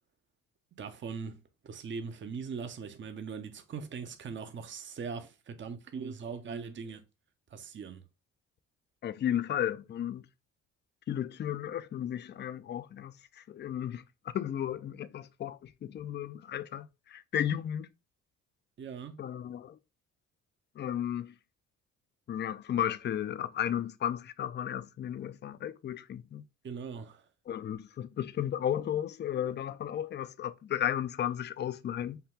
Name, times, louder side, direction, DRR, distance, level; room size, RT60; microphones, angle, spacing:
voice 1, 0.8-1.4 1.6-7.0 7.5-8.0 18.8-19.2 26.6-27.2, right 5 dB, 40° right, 0.7 m, -40 dB
voice 2, 9.0-10.3 11.1-14.0 14.3-17.9 19.2-19.8 20.8-21.3 22.3-26.4 27.5-32.2, left 10 dB, 35° left, 0.4 m, -34 dB
5.6 x 2.2 x 3.6 m
cardioid pair, 90°, 30 cm